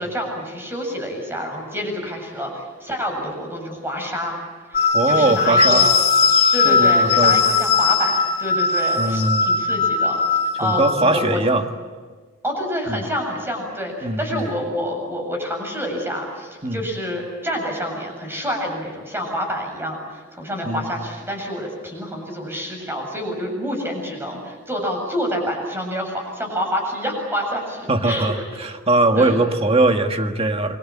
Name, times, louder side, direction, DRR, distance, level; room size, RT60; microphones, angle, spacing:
voice 1, 0.0-4.4 4.7-6.0 6.5-11.4 12.4-28.3 28.6-28.7 29.2-29.4, equal, 10° right, 2 dB, 7.7 m, -28 dB
sound 1, 4.7-11.3, left 5 dB, 50° left, 3.8 m, -19 dB
voice 2, 4.9-5.9 6.6-7.4 9.0-9.5 10.6-11.6 12.9-13.0 14.0-14.4 16.6-16.8 20.6-20.9 27.9-30.8, right 2 dB, 30° right, 5 dB, 1.8 m, -20 dB
28.5 x 23.5 x 8.8 m, 1.4 s
head